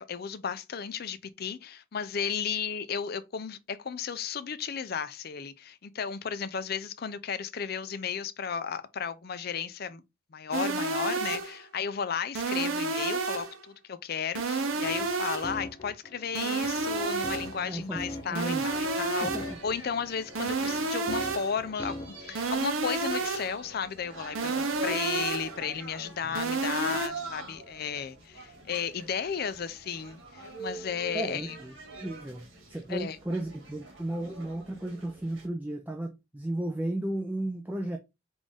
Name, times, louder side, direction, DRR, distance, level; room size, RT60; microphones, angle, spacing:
voice 1, 0.1-10.0 10.3-19.3 19.6-31.6 32.9-33.2, left 6 dB, 50° left, 0.5 m, -34 dB
sound 1, 10.5-11.6 12.3-13.6 14.3-15.6 16.3-17.6 18.3-19.6 20.3-21.6 22.3-23.6 24.3-25.6 26.3-27.1, right 3 dB, 85° right, 0.7 m, -30 dB
sound 2, 14.6-22.3, left 1 dB, 25° left, 0.8 m, -42 dB
sound 3, 16.9-35.5, right 2 dB, 70° right, 1.9 m, -45 dB
voice 2, 17.6-18.0 18.3-18.6 19.2-19.5 31.1-31.7 32.0-38.0, right 1 dB, 10° right, 0.4 m, -34 dB
5.2 x 2.6 x 3.5 m
head